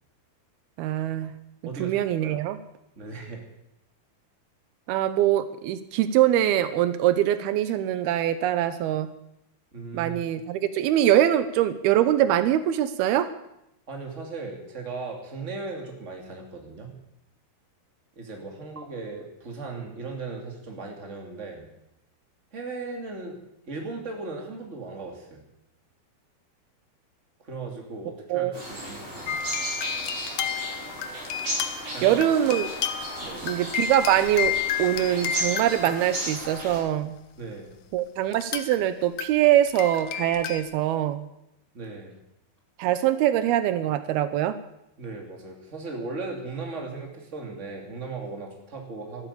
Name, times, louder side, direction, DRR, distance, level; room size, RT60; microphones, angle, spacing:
voice 1, 0.8-1.4 1.8-2.6 4.9-9.1 9.9-13.3 28.3-28.5 32.0-32.7 33.4-37.2 37.9-41.3 42.8-44.6, right 12 dB, 80° right, 12 dB, 2.7 m, -23 dB
voice 2, 1.6-2.4 3.0-3.4 9.7-10.2 13.9-17.0 18.2-21.7 22.5-23.4 23.7-25.4 27.4-29.4 31.9-32.2 33.2-33.5 37.4-37.7 41.7-42.1 45.0-49.3, right 3 dB, 20° right, 1 dB, 2.6 m, -37 dB
sound 1, 28.5-36.8, right 1 dB, 40° right, 6.4 m, -35 dB
sound 2, 29.3-37.0 38.3-38.8 39.2-40.6, left 8 dB, 70° left, 2.0 m, -32 dB
13.0 x 12.5 x 8.5 m, 0.83 s
omnidirectional pair, 4.5 m